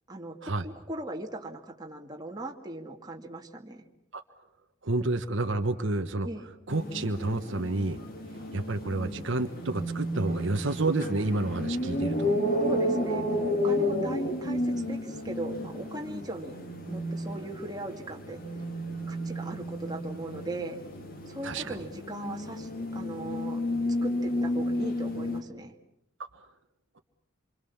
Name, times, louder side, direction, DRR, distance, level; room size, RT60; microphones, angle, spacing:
voice 1, 0.1-3.9 6.2-6.5 12.6-16.6 16.9-18.4 19.1-20.8 21.3-23.6 24.0-25.7, right 1 dB, 20° right, 1 dB, 2.3 m, -39 dB
voice 2, 4.8-6.3 6.7-8.0 8.5-12.3 21.4-21.8 26.3-26.4, right 2 dB, 60° right, 6 dB, 1.3 m, -29 dB
sound 1, 6.7-25.4, left 1 dB, 45° left, 3.2 m, -32 dB
27.0 x 25.5 x 7.3 m, 0.80 s
head